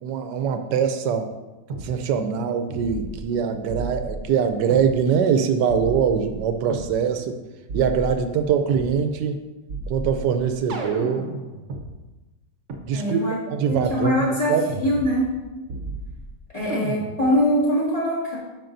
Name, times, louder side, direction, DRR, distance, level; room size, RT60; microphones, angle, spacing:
voice 1, 0.0-1.3 1.8-7.4 7.7-9.4 9.9-11.3 12.9-13.2 13.5-14.2 14.5-14.7 16.6-16.7, right 7 dB, 85° right, 7 dB, 1.2 m, -23 dB
sound 1, 1.7-1.9 2.7-3.4 3.7-4.9 5.7-6.9 7.7-8.9 9.7-11.8 12.7-12.8 13.7-13.9 14.7-15.4 15.7-16.3 16.7-17.3, right 2 dB, 55° right, 1.0 m, -33 dB
voice 2, 12.9-13.4 13.7-15.3 16.5-18.4, equal, 20° left, -7 dB, 2.0 m, -23 dB
8.8 x 5.8 x 2.6 m, 1.1 s
omnidirectional pair, 1.8 m